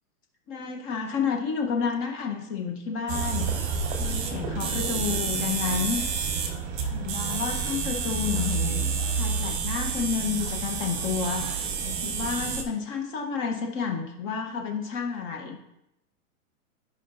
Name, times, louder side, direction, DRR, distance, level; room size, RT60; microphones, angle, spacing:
voice 1, 0.5-3.5 4.0-6.1 6.9-15.6, left 6 dB, 25° left, 2 dB, 0.8 m, -30 dB
sound 1, 3.1-12.6, right 5 dB, 35° right, 1.2 m, -29 dB
13.0 x 5.2 x 2.5 m, 0.86 s
hypercardioid pair, 150°, 43 cm